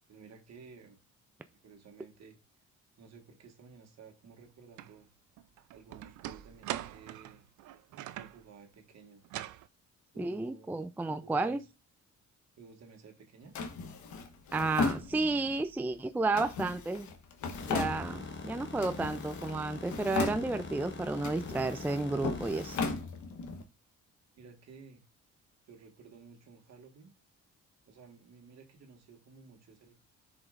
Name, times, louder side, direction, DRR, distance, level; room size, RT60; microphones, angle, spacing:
voice 1, 0.1-1.0 1.5-2.4 3.0-5.1 5.7-7.4 8.1-9.2 10.1-11.6 12.6-13.6 24.4-25.0 25.7-27.1 27.9-29.9, right 5 dB, 60° right, 1.7 m, -54 dB
sound 1, 4.8-4.9 5.4-8.4 9.2-9.7, right 13 dB, 80° right, 0.5 m, -42 dB
voice 2, 10.2-11.6 14.5-17.1 17.7-22.8, right 3 dB, 5° right, 0.4 m, -32 dB
Drawer open or close, 13.6-15.6 16.3-18.4 18.8-19.6 19.8-20.8 21.2-23.6, left 4 dB, 70° left, 1.2 m, -36 dB
sound 2, 17.5-22.9, left 3 dB, 40° left, 1.3 m, -43 dB
11.5 x 5.1 x 2.5 m
cardioid pair, 90°, 30 cm